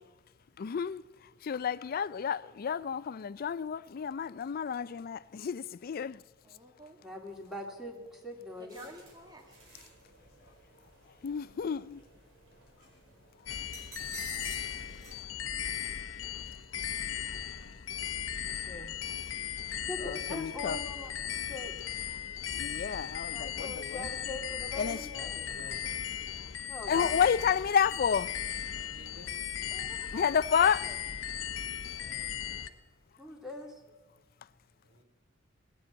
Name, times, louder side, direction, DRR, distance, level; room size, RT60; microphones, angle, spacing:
voice 1, 0.6-1.0 1.4-6.2 11.2-12.0 20.0-20.8 22.5-24.1 24.8-25.0 26.9-28.3 30.1-30.8, left 7 dB, 50° left, 0.4 m, -30 dB
voice 2, 6.4-7.0 8.6-9.6 29.7-31.0, right 1 dB, 20° right, 2.1 m, -50 dB
voice 3, 7.0-8.9 18.5-18.9 19.9-21.1 21.5-21.7 23.3-25.5 26.7-27.2 33.2-33.7, left 2 dB, ahead, 2.4 m, -42 dB
sound 1, 8.7-15.1, right 2 dB, 85° right, 4.8 m, -52 dB
sound 2, 13.5-32.7, left 9 dB, 75° left, 0.7 m, -37 dB
voice 4, 25.0-25.8 28.7-29.5 32.0-32.3 34.8-35.0, left 1 dB, 70° right, 2.8 m, -51 dB
19.5 x 7.9 x 8.5 m
head